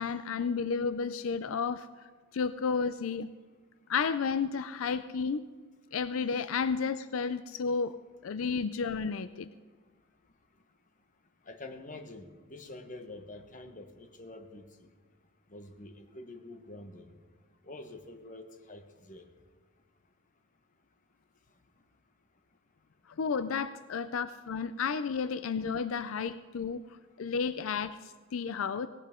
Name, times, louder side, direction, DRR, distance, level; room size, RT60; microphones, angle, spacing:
voice 1, 0.0-3.3 3.9-5.4 5.9-8.0 8.2-9.5 23.2-28.9, left 5 dB, 85° left, 13 dB, 0.5 m, -32 dB
voice 2, 11.5-14.9 15.5-17.1 17.6-19.2, left 2 dB, 40° left, 6 dB, 1.3 m, -47 dB
19.0 x 16.5 x 3.7 m, 1.4 s
head